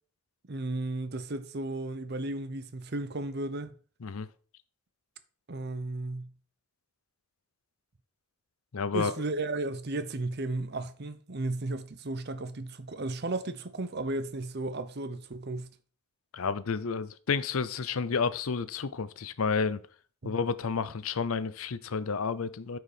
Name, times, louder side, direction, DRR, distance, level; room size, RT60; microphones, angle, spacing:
voice 1, 0.5-3.7 5.5-6.3 8.9-15.7 20.2-20.3, right 2 dB, 50° right, 0.7 m, -34 dB
voice 2, 8.7-9.1 16.3-19.8 20.2-22.8, left 5 dB, 75° left, 0.6 m, -30 dB
9.0 x 4.8 x 4.9 m
head